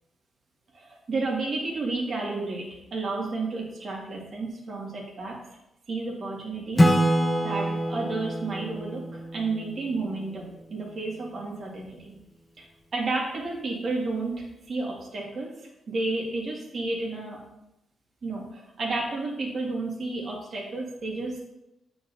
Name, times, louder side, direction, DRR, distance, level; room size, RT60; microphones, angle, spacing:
voice 1, 0.7-5.4 5.9-7.1 7.4-12.1 12.6-12.7 12.9-15.5 15.9-17.4 18.2-21.4, right 3 dB, 45° right, -2 dB, 2.0 m, -31 dB
Acoustic guitar / Strum, 6.8-10.3, equal, 15° left, 0.8 m, -25 dB
8.6 x 3.9 x 4.1 m, 0.87 s
cardioid pair, 110°, 0 cm